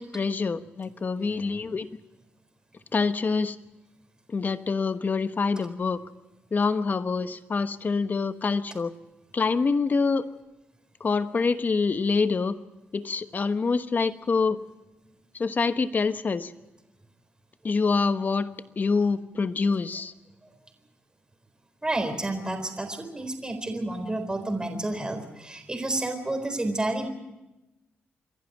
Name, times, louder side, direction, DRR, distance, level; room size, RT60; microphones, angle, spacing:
voice 1, 0.0-1.9 2.9-3.6 4.3-6.0 6.5-8.9 9.3-10.3 11.0-12.6 12.9-14.6 15.3-16.5 17.6-18.5 18.8-20.1, left 4 dB, 45° left, 11 dB, 1.1 m, -26 dB
voice 2, 21.8-27.1, right 2 dB, 20° right, 6 dB, 4.1 m, -30 dB
27.5 x 11.5 x 9.2 m, 1.0 s
cardioid pair, 75°, 4 cm